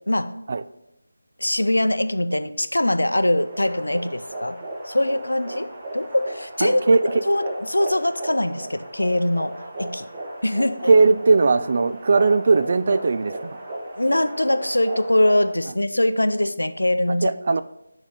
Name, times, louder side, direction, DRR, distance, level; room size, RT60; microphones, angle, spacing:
voice 1, 1.4-4.6 4.9-5.7 5.9-7.0 7.3-9.5 9.8-10.0 10.4-10.9 14.0-17.3, left 1 dB, 75° left, 10 dB, 0.6 m, -22 dB
sound 1, 3.4-15.5, right 1 dB, 25° right, 1.1 m, -35 dB
voice 2, 6.6-7.0 10.8-13.5 17.2-17.6, right 3 dB, 40° right, 12 dB, 0.3 m, -18 dB
7.3 x 4.0 x 6.4 m, 0.84 s
figure-of-eight pair, 160°, 0 cm